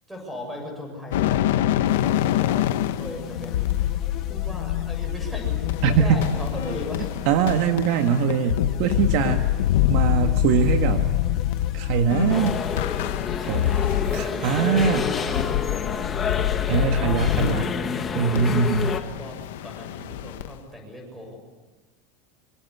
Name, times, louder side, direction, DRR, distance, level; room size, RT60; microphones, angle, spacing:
voice 1, 0.1-3.8 4.3-7.2 13.4-16.6 18.6-21.4, left 1 dB, 5° right, 3 dB, 7.4 m, -37 dB
sound 1, 1.1-14.4 14.7-17.7 18.3-20.5, left 13 dB, 85° left, 1.0 m, -25 dB
sound 2, 1.9-13.7, left 10 dB, 35° left, 2.2 m, -39 dB
voice 2, 5.8-6.2 7.3-9.5 9.9-11.1 11.7-12.6 13.5-13.6 14.1-15.0 16.7-17.8 18.1-19.0, right 6 dB, 50° right, 6 dB, 1.6 m, -22 dB
sound 3, 12.3-19.0, left 6 dB, 20° left, 1.6 m, -28 dB
26.0 x 25.5 x 8.4 m, 1.2 s
supercardioid pair, 170°, 0 cm